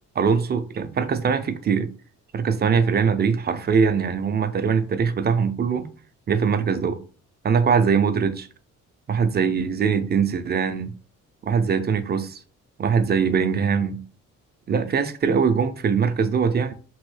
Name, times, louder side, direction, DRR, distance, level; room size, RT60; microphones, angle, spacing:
voice 1, 0.2-1.9 2.3-5.9 6.3-7.0 7.4-8.5 9.1-10.9 11.4-12.4 12.8-14.0 14.7-16.7, right 6 dB, 35° right, 0.4 m, -22 dB
3.0 x 2.6 x 3.1 m
cardioid pair, 90°, 30 cm